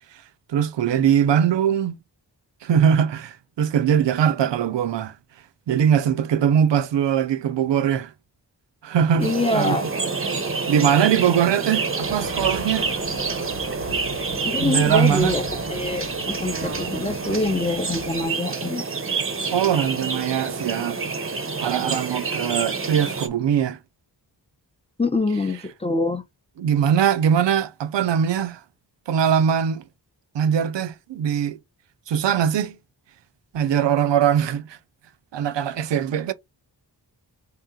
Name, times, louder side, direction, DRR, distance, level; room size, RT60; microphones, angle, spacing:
voice 1, 0.5-2.0 2.6-5.1 5.7-8.1 8.8-9.8 10.7-12.9 14.6-15.3 19.5-21.0 21.6-23.8 26.6-28.6 29.1-29.8 30.3-31.6 32.1-32.8 33.5-34.8 35.3-36.3, right 8 dB, 85° right, 0.5 m, -21 dB
voice 2, 9.2-9.9 14.4-18.8 25.0-26.2, left 2 dB, 15° left, 0.5 m, -25 dB
sound 1, 9.2-23.3, right 4 dB, 30° right, 0.6 m, -28 dB
sound 2, 12.0-18.3, left 4 dB, 80° left, 0.7 m, -41 dB
3.5 x 2.9 x 3.7 m
wide cardioid pair, 95°, 42 cm